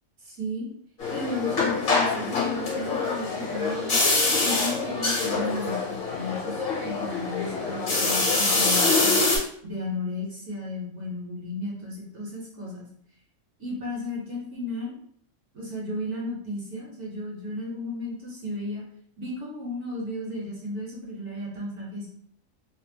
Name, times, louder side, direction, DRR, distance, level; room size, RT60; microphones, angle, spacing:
voice 1, 0.2-0.7 1.1-4.0 4.4-9.2 9.6-12.8 13.6-14.9 15.5-18.8 19.2-22.1, left 1 dB, 60° right, -4 dB, 1.3 m, -34 dB
sound 1, 1.0-9.4, left 3 dB, 50° left, 0.9 m, -25 dB
2.9 x 2.0 x 3.3 m, 0.64 s
omnidirectional pair, 1.4 m